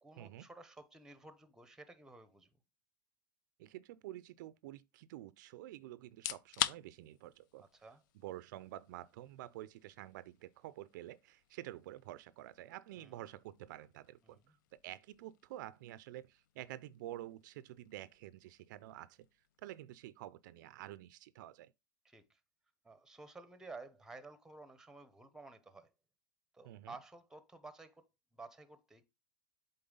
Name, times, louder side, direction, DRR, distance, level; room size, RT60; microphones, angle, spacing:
voice 1, 0.0-2.5 7.6-8.0 13.0-13.2 14.2-14.5 22.0-22.4 22.8-25.9 26.5-28.1 28.3-29.1, right 3 dB, 5° right, 0.8 m, -53 dB
voice 2, 3.6-7.6 8.1-14.4 14.8-19.3 19.6-21.7 26.6-27.0, right 14 dB, 65° right, 0.4 m, -49 dB
sound 1, 6.1-20.9, left 13 dB, 65° left, 0.4 m, -48 dB
7.7 x 4.0 x 3.8 m
hypercardioid pair, 125°, 11 cm